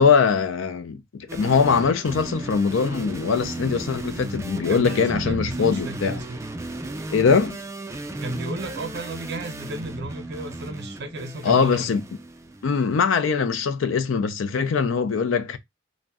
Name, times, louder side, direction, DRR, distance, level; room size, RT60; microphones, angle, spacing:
voice 1, 0.0-6.2 7.1-7.6 11.4-12.0 12.6-15.6, left 5 dB, 80° left, 0.4 m, -22 dB
sound 1, 1.3-12.8, right 2 dB, 15° right, 0.3 m, -35 dB
voice 2, 4.5-6.5 8.2-11.9, right 2 dB, 60° right, 0.6 m, -34 dB
2.6 x 2.1 x 3.4 m
head